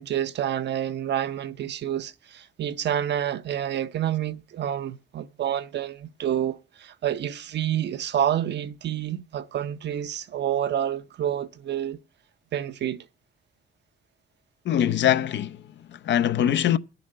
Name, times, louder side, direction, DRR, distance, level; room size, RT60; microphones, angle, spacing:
voice 1, 0.0-12.0 12.5-13.0, right 10 dB, 60° right, 0.8 m, -28 dB
voice 2, 14.6-16.8, left 10 dB, 65° left, 0.6 m, -23 dB
9.8 x 7.1 x 7.8 m
cardioid pair, 90°, 20 cm